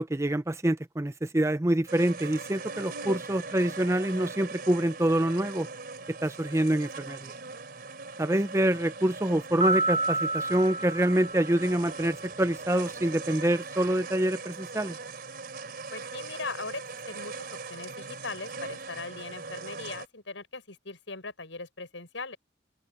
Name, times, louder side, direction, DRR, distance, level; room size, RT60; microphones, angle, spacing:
voice 1, 0.0-5.7 6.2-7.3 8.2-15.0, right 1 dB, 15° right, 0.6 m, -26 dB
sound 1, 1.9-20.1, right 4 dB, 55° right, 4.0 m, -40 dB
sound 2, 9.6-12.1, right 2 dB, 35° right, 2.8 m, -30 dB
voice 2, 15.9-22.4, left 3 dB, 80° left, 7.2 m, -39 dB
open air
head